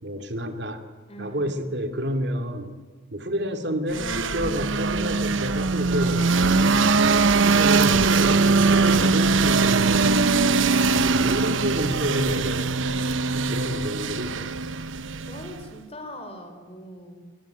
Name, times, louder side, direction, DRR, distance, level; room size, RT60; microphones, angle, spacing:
voice 1, 0.0-0.8 1.2-2.7 3.1-6.8 7.3-10.2 11.1-14.6, equal, 60° right, 6 dB, 2.7 m, -29 dB
voice 2, 1.1-1.7 13.4-13.7 15.2-17.2, equal, 30° left, 7 dB, 4.7 m, -43 dB
sound 1, 3.9-15.7, right 4 dB, 80° right, 0.9 m, -21 dB
28.0 x 22.0 x 9.4 m, 1.5 s
head